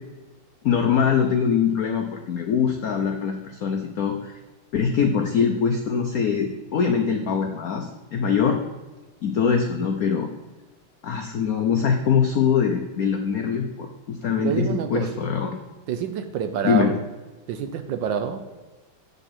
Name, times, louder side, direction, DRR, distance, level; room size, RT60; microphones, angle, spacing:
voice 1, 0.6-4.4 4.7-8.6 9.2-10.3 11.0-15.6 16.6-16.9, left 6 dB, 75° left, 4 dB, 0.8 m, -23 dB
voice 2, 14.4-15.3 15.9-17.0 17.5-18.5, right 8 dB, 70° right, 8 dB, 1.2 m, -27 dB
8.3 x 6.8 x 4.2 m, 1.2 s
omnidirectional pair, 2.4 m